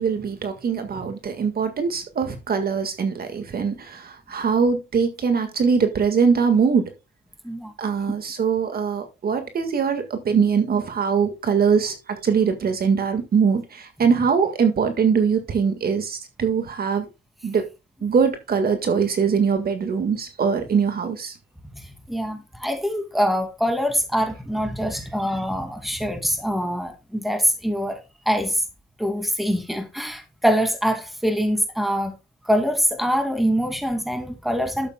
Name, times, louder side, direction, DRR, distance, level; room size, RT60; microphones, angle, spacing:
voice 1, 0.0-6.9 7.8-12.0 12.2-17.1 17.4-17.6 18.0-21.3, right 6 dB, 50° right, 1.8 m, -22 dB
voice 2, 22.1-28.0 28.3-28.6 29.0-32.1 32.4-34.9, equal, ahead, 2.5 m, -24 dB
12.0 x 8.1 x 2.3 m
cardioid pair, 90°, 20 cm